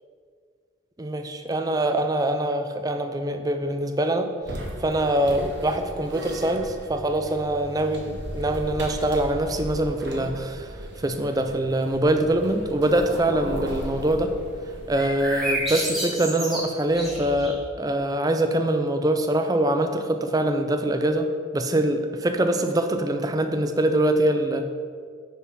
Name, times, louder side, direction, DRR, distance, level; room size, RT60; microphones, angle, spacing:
voice 1, 1.0-4.3 4.8-14.3 14.9-24.7, right 1 dB, 20° right, 7 dB, 0.4 m, -24 dB
sound 1, 4.4-15.9, right 1 dB, 60° right, 1.1 m, -37 dB
sound 2, 14.9-17.7, right 1 dB, ahead, 1.6 m, -30 dB
6.6 x 4.7 x 6.1 m, 2.1 s
head